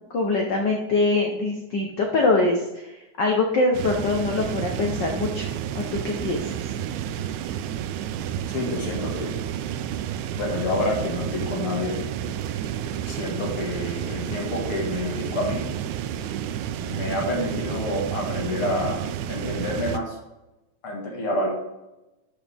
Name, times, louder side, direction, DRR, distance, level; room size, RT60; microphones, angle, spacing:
voice 1, 0.0-5.5 5.7-6.5, left 3 dB, 80° left, 1 dB, 0.9 m, -24 dB
sound 1, 3.7-20.0, right 10 dB, 80° right, 1.9 m, -31 dB
voice 2, 8.5-9.3 10.3-12.0 13.1-15.7 16.8-19.0 19.3-20.2 20.8-21.5, left 1 dB, 50° left, 0 dB, 2.5 m, -28 dB
12.0 x 6.5 x 3.5 m, 0.99 s
omnidirectional pair, 3.4 m